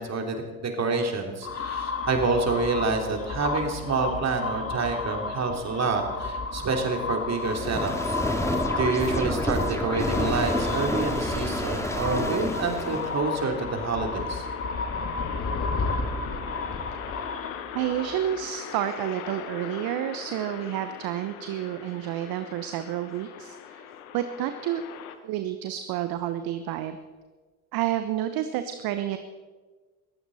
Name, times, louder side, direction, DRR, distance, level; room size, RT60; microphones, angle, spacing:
voice 1, 0.0-8.2 8.8-14.5, right 3 dB, 35° right, 3 dB, 3.2 m, -28 dB
sound 1, 1.4-18.5, left 3 dB, 30° left, 2.0 m, -33 dB
sound 2, 7.4-13.2, left 1 dB, 5° left, 2.3 m, -29 dB
sound 3, 10.2-25.2, left 9 dB, 75° left, 1.3 m, -41 dB
voice 2, 17.7-23.8 24.1-24.8 25.2-27.0 27.7-29.2, right 11 dB, 55° right, 9 dB, 1.0 m, -30 dB
21.5 x 15.0 x 4.2 m, 1.4 s
figure-of-eight pair, 60°, 43 cm